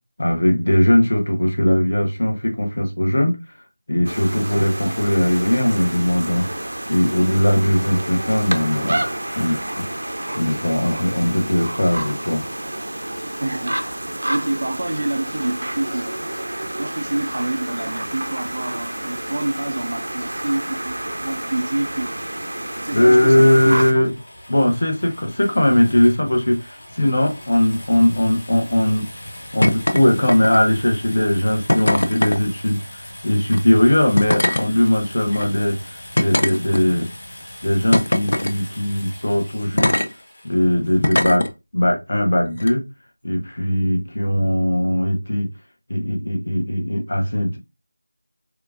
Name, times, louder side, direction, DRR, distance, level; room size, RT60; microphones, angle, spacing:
voice 1, 0.2-3.4 3.9-6.5 6.9-12.4 22.9-24.1 24.5-29.1 29.5-32.8 33.2-37.1 37.6-40.0 40.4-42.8 43.2-45.5 45.9-47.6, left 1 dB, 45° left, 1.2 m, -19 dB
sound 1, 4.0-23.9, right 1 dB, 70° right, 0.7 m, -29 dB
voice 2, 13.4-13.8 14.3-16.2 16.8-21.0 21.2-22.2 22.8-23.8, right 2 dB, 40° right, 0.5 m, -26 dB
sound 2, 23.3-41.1, left 1 dB, 30° left, 1.6 m, -39 dB
sound 3, 29.6-30.0 30.3-30.7 31.7-32.4 33.4-33.6 34.2-34.7 35.3-35.4 36.2-37.0 37.9-38.5 39.8-40.1 41.0-41.5 42.6-42.7, left 1 dB, 65° left, 0.6 m, -20 dB
6.4 x 2.5 x 2.5 m
figure-of-eight pair, 180°, 0 cm